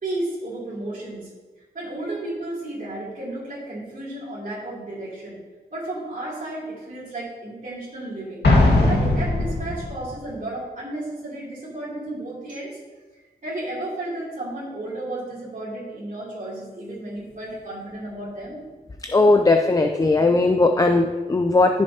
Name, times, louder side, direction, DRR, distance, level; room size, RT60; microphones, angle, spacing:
voice 1, 0.0-1.3 1.7-5.4 5.7-8.4 8.9-12.8 13.4-18.6, right 1 dB, 50° right, -8 dB, 2.9 m, -33 dB
Explosion, 8.4-10.1, left 2 dB, 90° left, 1.8 m, -19 dB
voice 2, 19.0-21.8, left 2 dB, 20° left, 4 dB, 0.4 m, -18 dB
13.5 x 6.5 x 2.8 m, 1.3 s
wide cardioid pair, 130°, 17 cm